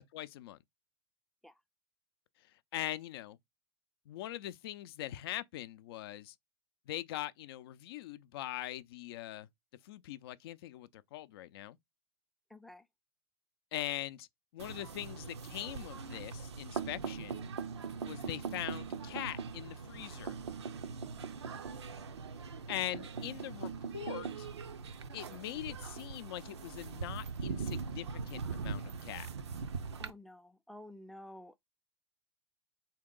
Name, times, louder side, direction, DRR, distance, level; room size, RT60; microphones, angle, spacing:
voice 1, 0.1-0.6 2.7-3.4 4.1-6.4 6.9-9.5 9.8-11.8 13.7-14.3 14.5-17.4 18.0-20.4 22.7-24.5 25.1-29.3, left 14 dB, 65° left, 0.4 m, -42 dB
voice 2, 12.5-12.9 21.0-21.2 30.0-31.6, left 1 dB, ahead, 0.4 m, -52 dB
sound 1, 14.6-30.1, right 5 dB, 85° right, 0.5 m, -41 dB
3.7 x 2.8 x 3.7 m
hypercardioid pair, 100°, 14 cm